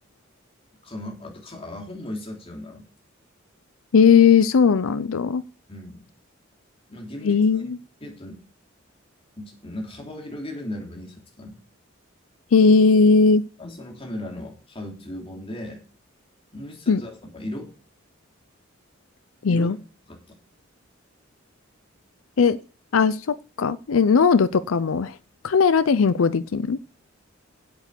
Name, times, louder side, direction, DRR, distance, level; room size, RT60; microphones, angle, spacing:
voice 1, 0.8-2.9 5.7-6.0 6.9-7.6 8.0-8.4 9.4-11.6 13.6-15.8 16.5-17.7 19.5-19.7 20.1-20.3, left 1 dB, 30° left, 1 dB, 3.4 m, -36 dB
voice 2, 3.9-5.4 7.2-7.8 12.5-13.4 16.9-17.0 19.4-19.8 22.4-22.6 22.9-25.2 25.4-26.8, left 5 dB, 80° left, 14 dB, 0.5 m, -18 dB
8.8 x 8.3 x 6.8 m, 0.35 s
head